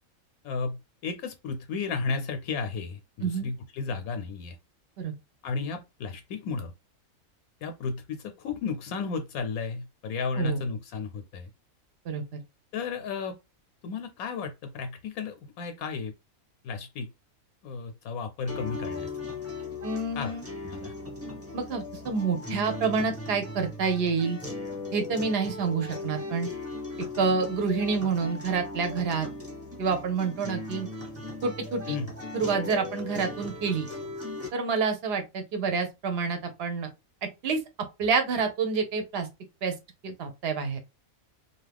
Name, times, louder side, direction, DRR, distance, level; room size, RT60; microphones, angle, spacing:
voice 1, 0.4-4.6 5.4-6.7 7.6-11.5 12.7-13.4 13.8-16.1 16.6-17.1 17.6-19.1 20.1-20.4 20.6-20.9 31.9-32.1, left 4 dB, 85° left, 1.0 m, -33 dB
voice 2, 12.0-12.4 19.8-20.5 21.5-24.4 24.9-26.5 27.2-29.3 29.8-30.9 31.4-32.0 32.3-33.9 34.5-36.9 37.2-37.6 38.0-39.3 39.6-39.7 40.0-40.8, right 5 dB, 55° right, 0.8 m, -28 dB
sound 1, 18.5-34.5, left 2 dB, 10° right, 0.9 m, -38 dB
2.7 x 2.3 x 3.3 m
omnidirectional pair, 1.5 m